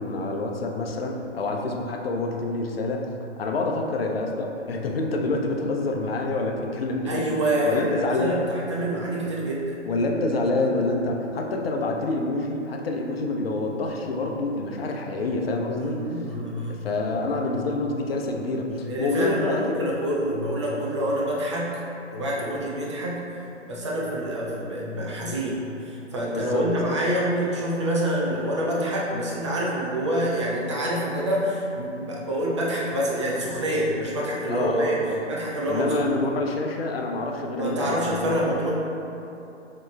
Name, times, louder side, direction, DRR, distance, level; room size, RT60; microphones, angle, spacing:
voice 1, 0.0-3.1 3.4-7.3 7.6-8.4 9.8-16.0 16.8-19.9 26.3-26.7 34.5-35.2 35.7-38.3, left 2 dB, 55° left, 1 dB, 0.6 m, -27 dB
voice 2, 7.1-9.8 15.8-16.8 18.8-21.8 22.1-23.3 23.7-35.0 35.3-36.2 37.5-38.7, equal, 25° right, -4 dB, 0.5 m, -27 dB
6.8 x 3.0 x 2.3 m, 2.9 s
figure-of-eight pair, 125°, 37 cm